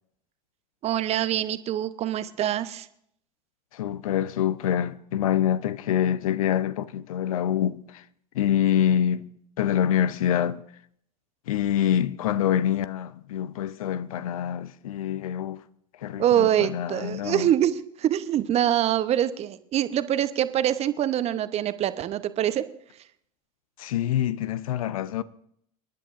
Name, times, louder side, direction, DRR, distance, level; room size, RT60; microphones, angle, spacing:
voice 1, 0.8-2.9 16.2-22.6, right 11 dB, 35° right, 0.8 m, -24 dB
voice 2, 3.7-8.0 8.3-9.3 9.6-10.6 11.5-15.6 16.0-17.5 23.8-25.2, left 10 dB, 65° left, 0.6 m, -26 dB
28.0 x 10.5 x 2.6 m
figure-of-eight pair, 80°, 19 cm